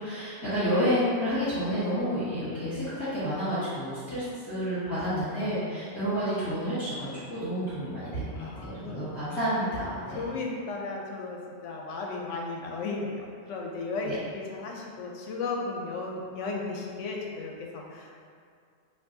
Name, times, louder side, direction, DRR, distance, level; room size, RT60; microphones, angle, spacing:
voice 1, 0.0-10.2 14.0-14.1, equal, 15° left, -18 dB, 1.5 m, -30 dB
voice 2, 8.4-9.0 9.9-18.2, left 3 dB, 85° left, 0 dB, 0.9 m, -35 dB
4.5 x 2.6 x 2.7 m, 2.2 s
omnidirectional pair, 1.2 m